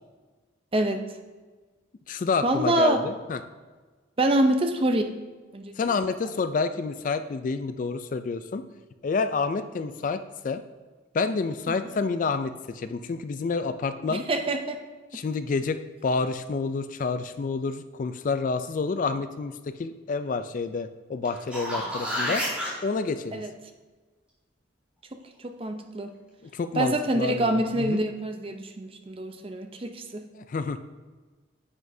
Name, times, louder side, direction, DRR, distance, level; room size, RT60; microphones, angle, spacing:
voice 1, 0.7-1.0 2.4-3.1 4.2-5.2 5.5-5.9 11.7-11.8 14.1-14.8 23.3-23.5 25.4-26.1 26.7-30.3, right 1 dB, 30° right, 6 dB, 0.6 m, -26 dB
voice 2, 2.1-3.4 5.8-8.6 9.0-10.6 11.1-14.3 15.1-22.4 22.8-23.4 26.5-28.0 30.4-30.8, left 4 dB, 40° left, 11 dB, 0.3 m, -29 dB
sound 1, 21.2-22.7 27.5-27.6, equal, 5° right, 2.3 m, -29 dB
9.6 x 8.0 x 2.7 m, 1.3 s
head